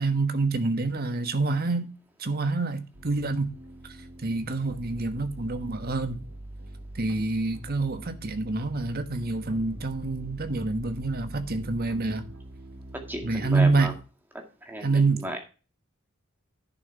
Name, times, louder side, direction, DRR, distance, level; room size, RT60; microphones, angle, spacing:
voice 1, 0.0-1.9 2.2-3.5 4.2-6.2 6.9-12.3 13.2-13.9 14.8-15.2, right 3 dB, 45° right, 1.3 m, -27 dB
sound 1, 2.9-13.9, right 1 dB, 85° right, 2.2 m, -43 dB
voice 2, 13.1-13.9 14.3-15.4, equal, 10° right, 2.1 m, -34 dB
11.0 x 6.5 x 4.4 m
head